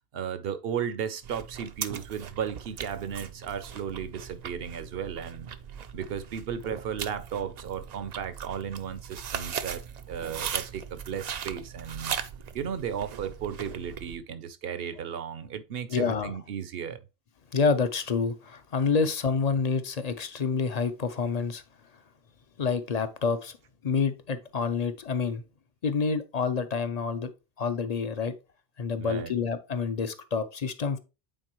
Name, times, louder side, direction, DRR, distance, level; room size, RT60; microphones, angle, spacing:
voice 1, 0.1-5.5 5.9-12.2 12.5-17.0 29.0-29.4, right 8 dB, 70° right, 0.9 m, -35 dB
sound 1, 1.2-14.2, right 8 dB, 55° right, 0.5 m, -39 dB
voice 2, 15.9-16.3 17.5-21.6 22.6-23.6 23.8-25.4 25.8-27.3 27.6-28.3 28.8-31.0, left 5 dB, 45° left, 0.7 m, -28 dB
8.9 x 4.1 x 3.0 m
omnidirectional pair, 1.0 m